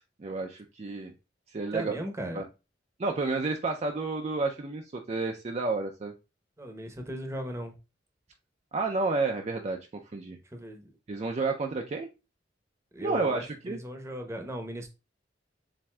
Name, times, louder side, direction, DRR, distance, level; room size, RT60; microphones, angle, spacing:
voice 1, 0.2-1.1 1.5-1.9 2.3-2.4 3.0-6.1 8.7-10.4 11.1-12.1 13.0-13.8, right 3 dB, 35° right, 3 dB, 0.4 m, -30 dB
voice 2, 1.7-2.4 6.6-7.8 10.4-10.9 12.9-14.9, right 1 dB, 15° right, 4 dB, 0.8 m, -37 dB
7.3 x 2.6 x 2.2 m, 0.28 s
head